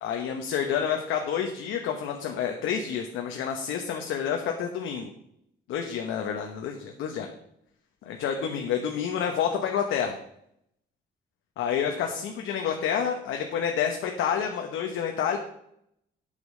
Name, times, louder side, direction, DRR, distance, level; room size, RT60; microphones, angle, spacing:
voice 1, 0.0-5.1 5.7-7.3 8.1-10.2 11.6-15.4, left 8 dB, 85° left, 2 dB, 1.0 m, -29 dB
8.3 x 6.9 x 5.4 m, 0.75 s
cardioid pair, 90°, 20 cm